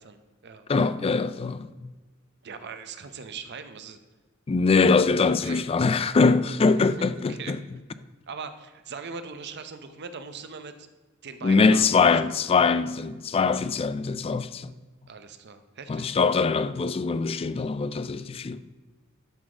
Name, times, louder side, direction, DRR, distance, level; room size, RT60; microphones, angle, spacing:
voice 1, 0.0-0.9 2.4-4.0 5.4-5.6 7.0-7.6 8.3-10.9 11.2-12.2 15.1-16.2, right 5 dB, 50° right, 0.7 m, -41 dB
voice 2, 0.7-1.9 4.5-7.6 11.4-14.7 15.9-18.6, left 4 dB, 25° left, 0.3 m, -23 dB
12.5 x 4.1 x 4.9 m
head